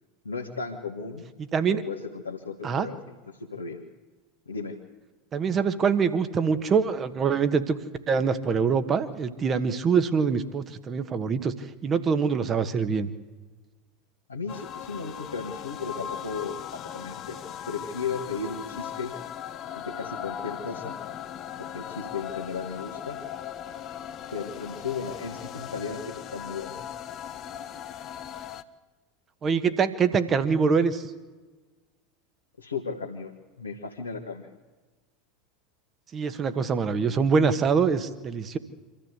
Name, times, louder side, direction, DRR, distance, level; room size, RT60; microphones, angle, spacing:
voice 1, 0.3-1.2 1.7-3.8 4.5-4.8 14.3-17.4 17.7-19.1 19.8-21.0 21.6-23.2 24.3-26.8 32.6-34.5, left 5 dB, 75° left, -2 dB, 1.6 m, -35 dB
voice 2, 1.5-1.8 2.6-2.9 5.3-7.8 8.1-11.5 11.8-13.1 29.4-31.1 36.1-38.6, right 5 dB, 30° right, 11 dB, 1.4 m, -24 dB
sound 1, 14.5-28.6, left 10 dB, 35° left, 0.9 m, -38 dB
25.5 x 14.0 x 8.2 m, 1.3 s
figure-of-eight pair, 80°, 0 cm